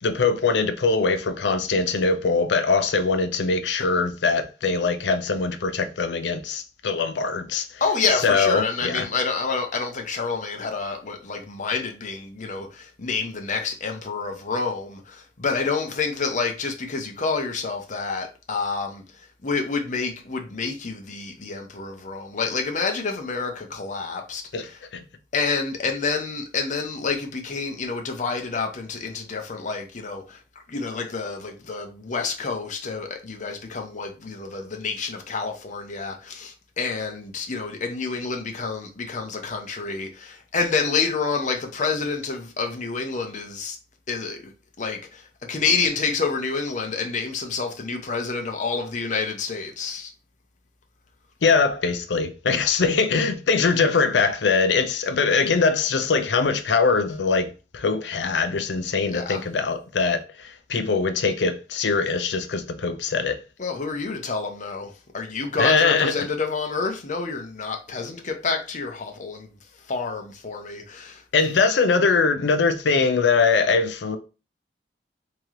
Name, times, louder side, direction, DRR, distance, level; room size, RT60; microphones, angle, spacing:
voice 1, 0.0-7.8 8.2-9.1 24.5-24.7 24.9-25.0 51.4-63.4 65.6-66.1 71.3-74.2, left 4 dB, 80° left, 0.5 m, -22 dB
voice 2, 7.8-24.8 25.3-30.4 30.7-43.8 44.1-44.5 44.8-50.1 59.0-59.4 63.6-69.5 69.8-71.2, left 4 dB, 45° left, 0.8 m, -28 dB
3.7 x 3.0 x 3.0 m
head